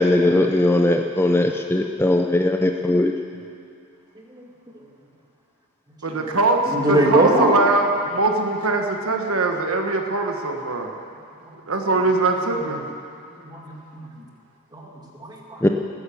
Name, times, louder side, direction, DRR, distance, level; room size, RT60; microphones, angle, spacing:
voice 1, 0.0-3.1 15.6-15.7, left 1 dB, 10° left, 4 dB, 0.5 m, -19 dB
voice 2, 6.0-10.9 11.7-12.8, right 3 dB, 65° right, 3 dB, 1.4 m, -22 dB
voice 3, 6.7-7.6 13.4-14.0 14.7-14.9 15.1-15.6, right 1 dB, 20° right, -2 dB, 2.1 m, -21 dB
19.0 x 10.0 x 7.0 m, 2.5 s
head